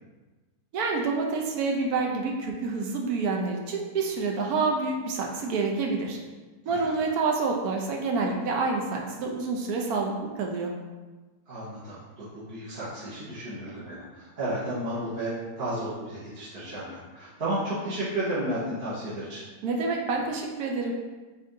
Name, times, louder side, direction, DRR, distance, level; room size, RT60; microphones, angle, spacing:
voice 1, 0.7-6.2 6.7-10.7 19.6-20.9, right 4 dB, 70° right, 1 dB, 1.0 m, -28 dB
voice 2, 11.5-19.4, right 1 dB, 45° right, -11 dB, 1.1 m, -33 dB
4.4 x 2.6 x 3.7 m, 1.3 s
omnidirectional pair, 1.7 m